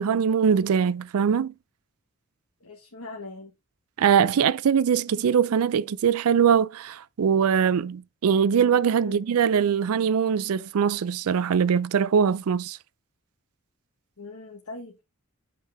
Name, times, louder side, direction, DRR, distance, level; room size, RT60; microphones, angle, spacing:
voice 1, 0.0-1.5 4.0-12.8, right 7 dB, 75° right, 0.4 m, -22 dB
voice 2, 2.6-3.5 9.0-9.2 14.2-15.0, left 3 dB, 85° left, 1.5 m, -41 dB
8.2 x 4.6 x 3.5 m
head